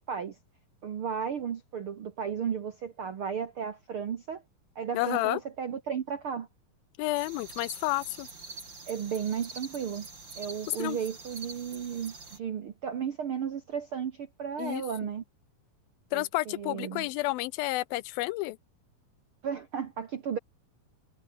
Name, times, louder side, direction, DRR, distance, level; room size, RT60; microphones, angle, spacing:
voice 1, 0.8-4.4 4.7-6.5 8.9-10.1 10.4-15.2 16.1-17.1 19.4-20.4, right 7 dB, 65° right, 1.4 m, -34 dB
voice 2, 4.9-5.4 7.0-8.3 10.8-11.0 14.6-14.8 16.1-18.6, left 19 dB, 80° left, 2.3 m, -30 dB
sound 1, 7.1-12.4, right 3 dB, 30° right, 5.4 m, -45 dB
omnidirectional pair, 4.4 m